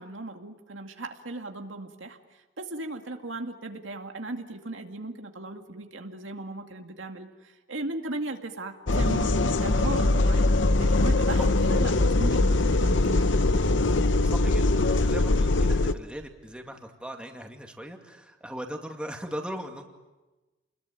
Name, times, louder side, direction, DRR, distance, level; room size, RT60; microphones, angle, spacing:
voice 1, 0.0-2.2 2.6-7.3 7.7-13.3, right 2 dB, 85° right, 4 dB, 2.3 m, -37 dB
sound 1, 8.9-15.9, left 2 dB, 70° left, 0.9 m, -22 dB
voice 2, 14.2-19.8, equal, 5° right, 3 dB, 2.3 m, -39 dB
29.5 x 21.5 x 9.1 m, 1.2 s
head